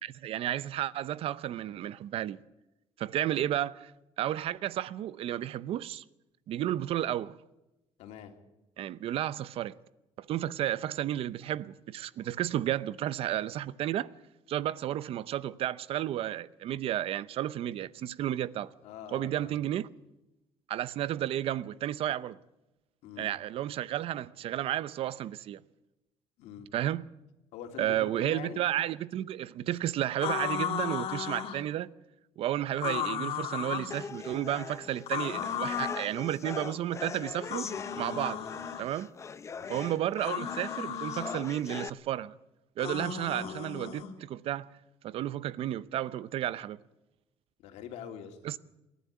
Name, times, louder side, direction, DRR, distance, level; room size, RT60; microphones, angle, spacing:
voice 1, 0.0-2.4 3.0-3.9 4.2-6.0 6.5-7.4 8.8-9.8 10.2-14.1 14.5-18.7 19.1-19.9 20.7-22.4 23.2-25.6 26.7-27.0 27.8-31.9 32.4-37.7 38.0-38.4 38.8-39.1 39.7-42.3 42.8-44.7 45.0-46.8 48.4-48.6, right 12 dB, 60° right, 0.7 m, -32 dB
voice 2, 8.0-8.3 18.8-19.6 23.0-23.3 26.4-26.7 27.5-28.6 39.5-39.8 47.6-48.4, left 9 dB, 85° left, 3.0 m, -44 dB
sound 1, 30.2-31.6 32.8-33.9 35.1-36.1 37.4-38.8 40.2-41.4 42.8-44.1, left 9 dB, 60° left, 2.8 m, -35 dB
sound 2, 33.9-41.9, left 6 dB, 25° left, 0.6 m, -41 dB
27.5 x 11.5 x 8.3 m
cardioid pair, 140°, 11 cm